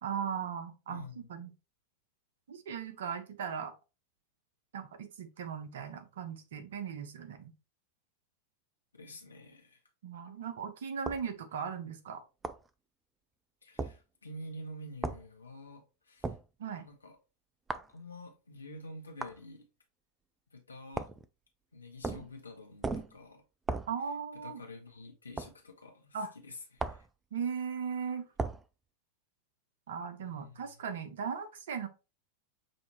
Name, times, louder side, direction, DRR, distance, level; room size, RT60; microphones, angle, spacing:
voice 1, 0.0-1.0 1.3-1.5 2.5-3.7 4.7-7.5 10.0-12.2 16.6-16.9 23.9-24.6 26.1-26.3 27.3-28.3 29.9-31.9, right 7 dB, 60° right, 0.8 m, -38 dB
voice 2, 0.9-1.3 8.9-9.8 13.6-16.4 16.8-17.2 17.9-19.7 20.5-21.1 21.7-23.4 24.3-27.1 30.2-30.8, left 1 dB, 75° left, 1.1 m, -48 dB
sound 1, 11.1-11.3 12.4-12.7 13.8-14.0 15.0-15.2 16.2-16.5 17.7-17.9 19.2-19.4 20.9-21.3 22.0-22.3 22.8-23.2 23.7-23.9 25.4-25.5 26.8-27.1 28.4-28.6, right 3 dB, 15° right, 0.3 m, -36 dB
6.4 x 2.8 x 2.9 m
figure-of-eight pair, 90°, 0 cm